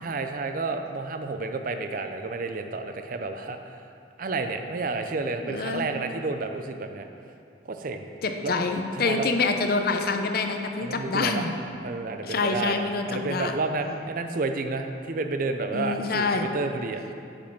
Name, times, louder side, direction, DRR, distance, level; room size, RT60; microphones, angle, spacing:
voice 1, 0.0-3.8 4.2-7.0 7.7-8.0 8.4-8.5 8.9-9.3 10.8-11.5 11.8-17.1, right 3 dB, 45° right, 6 dB, 0.4 m, -30 dB
voice 2, 5.4-5.9 8.2-11.5 12.2-13.5 15.7-16.5, left 3 dB, 50° left, 5 dB, 0.6 m, -26 dB
8.5 x 5.3 x 5.4 m, 2.5 s
head